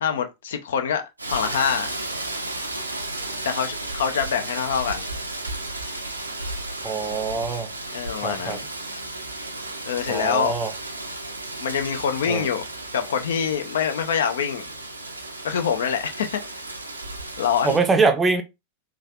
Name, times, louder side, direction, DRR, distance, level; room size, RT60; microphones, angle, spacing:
voice 1, 0.0-1.9 3.4-5.0 7.9-8.6 9.8-10.5 11.6-12.6 12.9-14.7 15.4-16.4 17.4-17.8, left 7 dB, 60° left, 0.4 m, -25 dB
Rain, 1.2-17.8, right 2 dB, 80° right, 0.4 m, -34 dB
voice 2, 6.8-7.7 8.2-8.6 10.1-10.7 12.3-12.5 17.6-18.4, right 4 dB, 15° right, 0.5 m, -23 dB
3.2 x 2.3 x 2.3 m
figure-of-eight pair, 90°, 0 cm